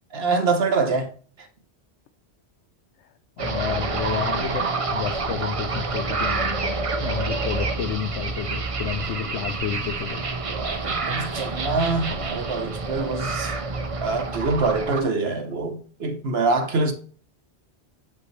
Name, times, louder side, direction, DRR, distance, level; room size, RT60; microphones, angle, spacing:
voice 1, 0.1-1.1 1.4-1.5 10.5-13.6 14.0-16.9, right 3 dB, 70° right, 1.2 m, -25 dB
voice 2, 3.0-10.3, left 9 dB, 85° left, 0.9 m, -31 dB
sound 1, 3.4-15.0, right 3 dB, 35° right, 0.7 m, -28 dB
8.2 x 5.5 x 3.1 m
omnidirectional pair, 1.1 m